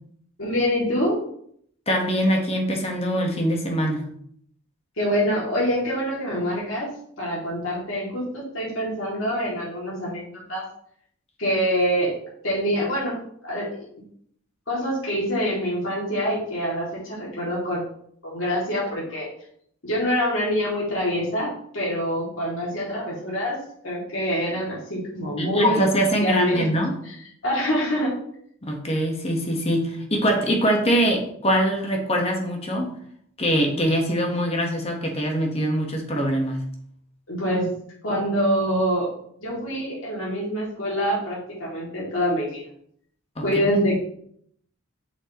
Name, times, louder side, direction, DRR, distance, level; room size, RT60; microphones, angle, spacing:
voice 1, 0.4-1.2 5.0-6.9 7.2-10.6 11.4-12.1 12.4-13.1 13.4-13.7 14.7-17.9 18.2-19.3 19.8-23.6 23.8-25.9 26.2-26.6 27.0-27.2 27.4-28.1 37.3-37.7 38.0-39.1 39.4-42.6 43.4-44.0, equal, 80° left, -6 dB, 2.5 m, -25 dB
voice 2, 1.9-4.1 25.4-26.9 28.6-32.9 33.4-36.6 43.4-43.8, equal, 30° left, 2 dB, 1.3 m, -23 dB
6.6 x 6.2 x 3.0 m, 0.66 s
head